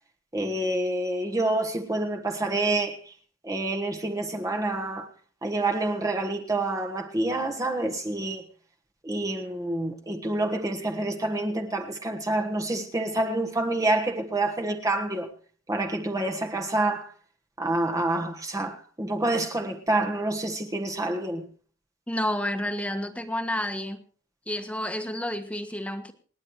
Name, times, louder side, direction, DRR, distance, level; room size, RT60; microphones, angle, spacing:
voice 1, 0.3-3.1 3.4-5.1 5.4-8.4 9.0-15.3 15.7-17.1 17.6-21.4, right 2 dB, 15° right, 1.3 m, -27 dB
voice 2, 22.1-24.0 24.5-26.1, left 1 dB, 5° left, 1.4 m, -30 dB
28.0 x 9.7 x 3.1 m
head